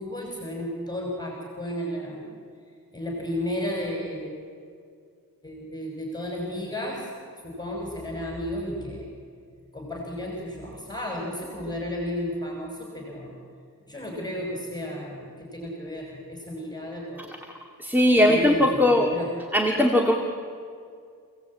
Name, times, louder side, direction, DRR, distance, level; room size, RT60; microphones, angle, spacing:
voice 1, 0.0-2.3 2.9-4.3 5.4-7.1 7.4-9.1 9.7-13.3 13.9-17.3 18.2-19.3, left 1 dB, 10° left, -1 dB, 5.6 m, -33 dB
voice 2, 17.8-19.1 19.5-20.1, left 1 dB, 5° right, 0 dB, 2.2 m, -19 dB
29.0 x 18.0 x 8.6 m, 2.2 s
wide cardioid pair, 80°, 36 cm